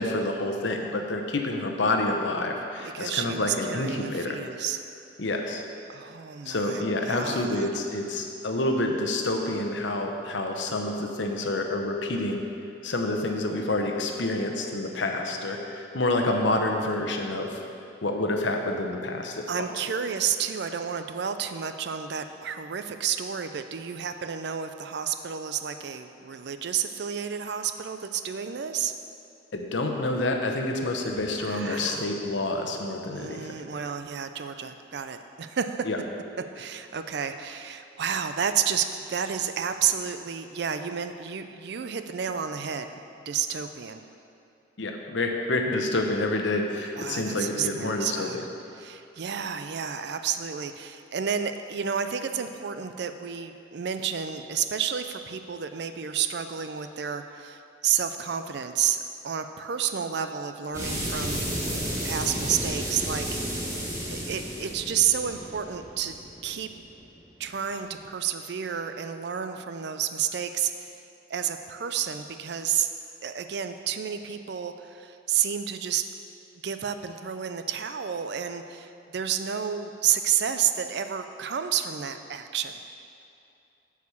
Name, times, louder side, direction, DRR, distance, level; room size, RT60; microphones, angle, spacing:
voice 1, 0.0-4.4 5.2-5.6 6.4-12.4 12.8-17.6 18.0-19.5 29.5-33.6 35.8-36.0 44.8-48.4, left 2 dB, 70° left, 3 dB, 0.9 m, -28 dB
voice 2, 2.8-4.8 5.9-7.7 19.5-28.9 31.4-32.1 33.1-35.9 36.5-42.9 43.3-44.0 47.0-48.4 48.8-59.0 59.2-61.4 62.0-63.4 64.1-66.7 67.4-71.0 71.3-72.9 73.2-76.1 76.6-82.9, right 8 dB, 60° right, 9 dB, 0.4 m, -30 dB
sound 1, 60.7-67.2, equal, 15° right, 1.6 m, -32 dB
8.2 x 4.8 x 7.1 m, 2.6 s
head